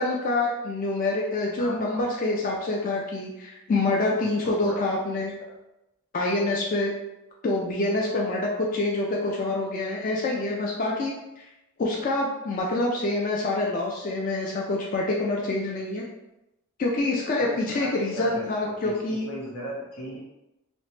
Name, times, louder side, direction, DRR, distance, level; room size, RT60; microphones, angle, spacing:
voice 1, 0.0-5.3 6.1-6.9 7.4-11.5 11.8-16.0 16.8-19.3, left 2 dB, 40° left, -2 dB, 0.3 m, -26 dB
voice 2, 1.6-2.1 4.2-4.9 5.4-5.5 17.4-20.2, equal, 90° left, -4 dB, 0.9 m, -37 dB
2.9 x 2.1 x 3.1 m, 0.94 s
head